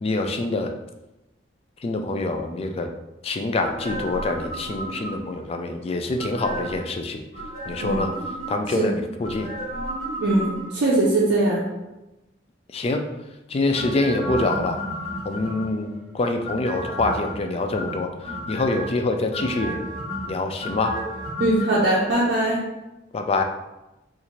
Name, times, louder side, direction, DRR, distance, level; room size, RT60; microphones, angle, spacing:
voice 1, 0.0-0.7 1.8-2.9 3.2-7.2 7.7-8.1 8.5-9.5 12.7-13.0 13.5-14.8 15.3-15.9 16.1-18.1 18.5-19.8 20.3-21.0 23.1-23.4, left 2 dB, 30° left, 5 dB, 0.3 m, -25 dB
sound 1, 3.6-5.4 6.2-6.9 7.3-8.8 9.2-10.9 13.7-15.8 16.4-17.3 17.7-18.9 19.3-21.7 22.0-22.1, equal, 50° left, 1.3 m, -32 dB
voice 2, 10.2-11.6 21.4-22.6, right 2 dB, 60° right, -6 dB, 0.6 m, -21 dB
4.1 x 2.5 x 3.0 m, 0.99 s
head